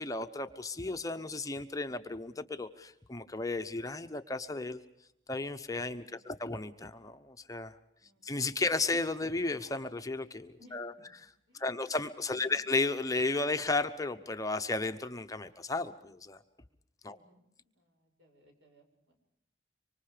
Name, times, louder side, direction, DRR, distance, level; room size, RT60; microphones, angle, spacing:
voice 1, 0.0-4.8 5.3-7.7 8.2-10.9 11.5-16.4 17.0-17.2, left 3 dB, 15° left, 8 dB, 0.8 m, -34 dB
voice 2, 6.0-6.5 8.0-8.2 10.6-10.8 11.5-12.6 17.0-17.4 17.7-19.2, equal, 65° right, 3 dB, 6.6 m, -60 dB
26.0 x 25.0 x 5.0 m, 0.78 s
head